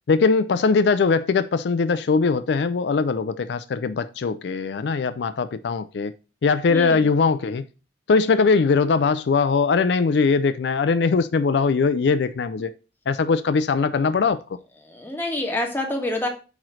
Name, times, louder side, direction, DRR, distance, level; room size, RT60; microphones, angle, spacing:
voice 1, 0.1-6.1 6.4-7.7 8.1-12.7 13.1-14.4, left 4 dB, 65° left, 0.4 m, -21 dB
voice 2, 6.7-7.0 14.8-16.3, left 1 dB, 10° left, 1.6 m, -27 dB
8.8 x 3.1 x 6.1 m
head